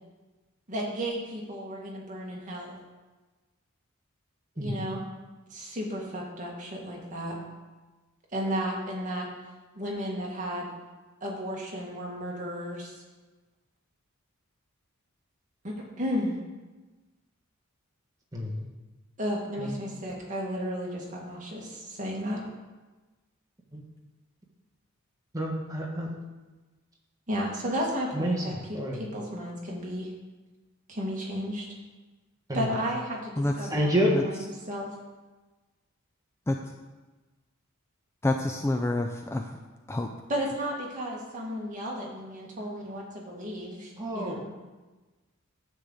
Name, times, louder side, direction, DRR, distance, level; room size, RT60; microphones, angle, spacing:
voice 1, 0.7-2.8 4.6-5.0 5.5-7.4 8.3-9.3 9.8-10.7 11.2-12.9 15.6-16.4 19.2-22.4 27.3-30.1 30.9-31.7 32.5-33.9 34.2-35.0 40.3-44.4, equal, 35° right, -2 dB, 1.8 m, -33 dB
voice 2, 18.3-18.6 19.6-19.7 23.7-23.8 25.3-26.1 28.1-28.4 28.7-29.0 32.5-32.7 33.7-34.2 44.0-44.5, equal, 15° right, -2 dB, 1.4 m, -28 dB
voice 3, 38.2-39.5 39.9-40.1, left 2 dB, 10° left, 3 dB, 0.4 m, -27 dB
10.0 x 3.9 x 7.2 m, 1.2 s
head